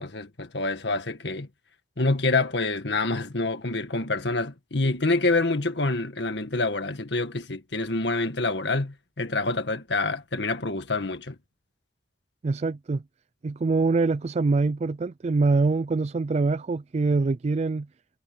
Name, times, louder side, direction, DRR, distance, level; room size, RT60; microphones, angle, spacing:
voice 1, 0.0-1.5 2.0-11.4, left 3 dB, 70° left, 1.8 m, -27 dB
voice 2, 12.4-13.0 13.4-17.9, right 3 dB, 35° right, 0.4 m, -24 dB
head